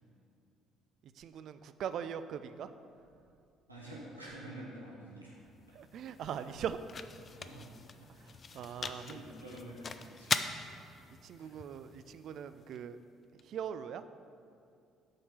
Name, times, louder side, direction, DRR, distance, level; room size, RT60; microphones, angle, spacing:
voice 1, 1.0-2.7 5.7-6.8 8.1-9.3 11.2-13.0 13.3-14.0, right 8 dB, 55° right, 11 dB, 0.3 m, -41 dB
voice 2, 3.7-5.4 7.3-7.6 8.5-10.3 11.4-11.5, right 1 dB, 90° right, -6 dB, 1.0 m, -48 dB
sound 1, 5.3-13.4, left 5 dB, 35° left, 0.4 m, -42 dB
7.7 x 4.4 x 5.6 m, 2.4 s
figure-of-eight pair, 50°, 0 cm